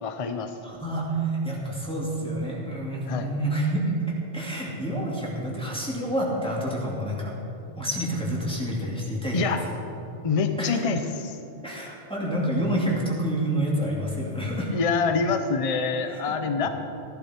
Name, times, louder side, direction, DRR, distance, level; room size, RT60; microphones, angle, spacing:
voice 1, 0.0-0.6 3.1-3.3 9.3-9.6 10.2-11.4 14.7-16.7, left 5 dB, 35° left, 8 dB, 0.7 m, -26 dB
voice 2, 0.6-3.8 4.3-7.3 7.8-9.6 10.6-10.8 11.6-14.7 16.3-16.7, right 1 dB, 5° left, -5 dB, 2.5 m, -28 dB
15.0 x 11.5 x 4.5 m, 2.7 s
omnidirectional pair, 1.2 m